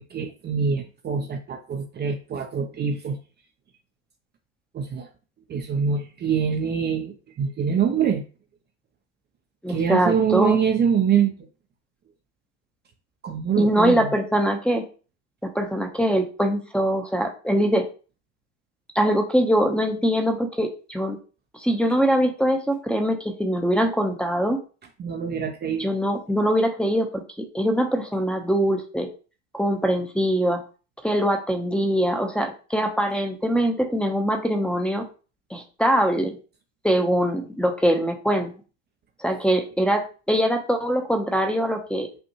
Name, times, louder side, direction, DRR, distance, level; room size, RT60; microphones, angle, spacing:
voice 1, 0.0-3.2 4.7-5.1 5.5-8.2 9.7-11.3 13.2-14.1 25.0-25.9, right 7 dB, 30° right, 4 dB, 0.6 m, -24 dB
voice 2, 9.6-10.6 13.6-14.8 15.4-17.9 18.9-21.2 21.5-24.6 25.7-27.1 27.4-29.1 29.5-30.6 31.0-35.1 35.5-36.4 36.8-38.5 39.2-42.1, equal, 5° left, 1 dB, 0.8 m, -23 dB
5.5 x 2.5 x 2.9 m, 0.35 s
supercardioid pair, 100°, 35 cm